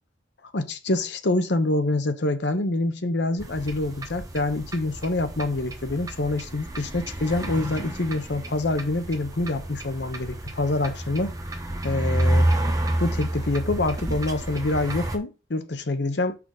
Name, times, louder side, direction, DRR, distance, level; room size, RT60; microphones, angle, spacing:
voice 1, 0.5-11.3 11.8-12.5 13.0-16.4, left 2 dB, 65° left, 0.9 m, -26 dB
sound 1, 3.4-15.2, right 1 dB, 20° right, 0.9 m, -29 dB
6.0 x 3.9 x 4.8 m
head